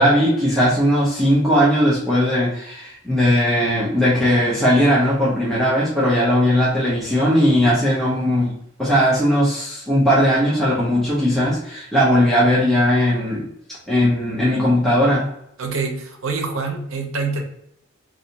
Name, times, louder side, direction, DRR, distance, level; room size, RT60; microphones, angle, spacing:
voice 1, 0.0-13.5 13.9-15.3, equal, ahead, -8 dB, 0.7 m, -18 dB
voice 2, 15.6-17.4, right 4 dB, 70° right, 3 dB, 0.7 m, -25 dB
3.2 x 2.6 x 2.7 m, 0.74 s
head